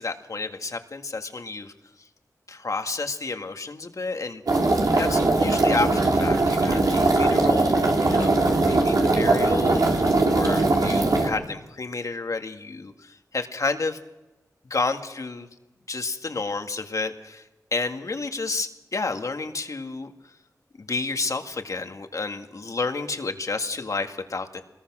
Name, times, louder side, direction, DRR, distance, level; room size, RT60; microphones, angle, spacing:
voice 1, 0.0-1.7 2.5-4.4 4.9-14.0 14.7-15.5 15.9-17.4 17.7-20.1 20.8-24.6, left 3 dB, 60° left, 6 dB, 1.9 m, -30 dB
sound 1, 4.5-11.3, right 2 dB, 80° right, 3.8 m, -20 dB
25.5 x 21.0 x 6.1 m, 1.0 s
wide cardioid pair, 90°, 6 cm